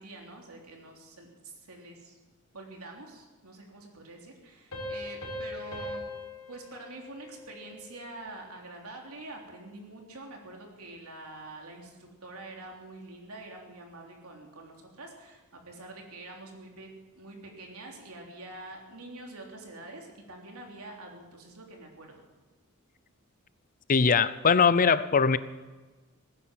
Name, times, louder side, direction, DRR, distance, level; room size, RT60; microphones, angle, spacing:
voice 1, 0.0-2.2 2.5-6.0 6.5-16.9 17.1-22.2, right 2 dB, 80° right, 1 dB, 3.4 m, -46 dB
Piano, 4.7-8.0, left 1 dB, 75° left, 4.1 m, -40 dB
voice 2, 23.9-25.4, left 5 dB, 40° left, 16 dB, 0.5 m, -21 dB
19.0 x 9.9 x 7.6 m, 1.3 s
head